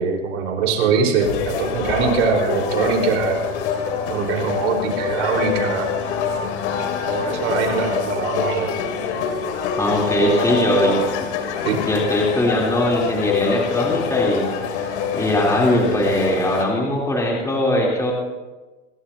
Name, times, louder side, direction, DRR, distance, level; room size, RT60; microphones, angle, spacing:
voice 1, 0.0-3.4 4.1-5.9 7.1-8.7 10.2-11.0 11.6-11.8, right 5 dB, 75° right, 1 dB, 4.6 m, -22 dB
sound 1, 1.2-16.6, left 7 dB, 70° left, 2.5 m, -25 dB
voice 2, 9.8-11.0 11.8-14.9 15.1-18.1, left 1 dB, 10° left, -3 dB, 3.4 m, -20 dB
26.5 x 12.5 x 2.9 m, 1.2 s
supercardioid pair, 135°, 36 cm